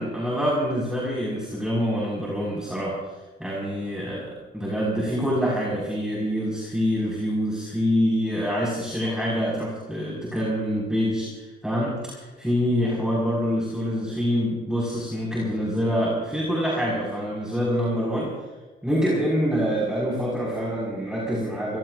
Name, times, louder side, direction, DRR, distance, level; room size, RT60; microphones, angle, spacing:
voice 1, 0.0-3.0 3.4-18.3 18.8-21.8, equal, 5° right, -5 dB, 5.8 m, -26 dB
27.5 x 17.0 x 2.7 m, 1.2 s
cardioid pair, 90°, 20 cm